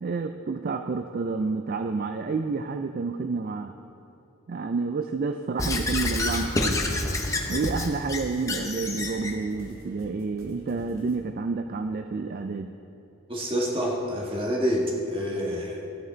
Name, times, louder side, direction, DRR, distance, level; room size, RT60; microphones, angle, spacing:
voice 1, 0.0-3.8 4.5-6.8 7.5-12.7, right 4 dB, 40° right, 7 dB, 0.3 m, -29 dB
Squeak / Writing, 5.6-9.3, left 2 dB, 15° left, 0.7 m, -28 dB
sound 1, 5.8-11.2, equal, 75° right, 1.7 m, -46 dB
voice 2, 13.3-15.9, equal, 25° right, -2 dB, 1.5 m, -27 dB
14.5 x 9.5 x 3.9 m, 2.9 s
head